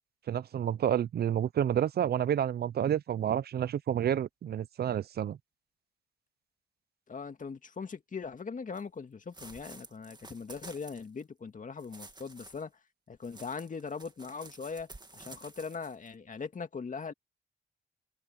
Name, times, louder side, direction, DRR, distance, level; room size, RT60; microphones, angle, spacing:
voice 1, 0.3-5.4, right 10 dB, 70° right, 0.6 m, -29 dB
voice 2, 7.1-12.7 13.1-17.1, left 5 dB, 50° left, 2.1 m, -40 dB
sound 1, 8.7-8.8 9.3-11.2 11.8-12.6 13.2-16.1, right 2 dB, 25° right, 2.2 m, -51 dB
supercardioid pair, 50°, 17 cm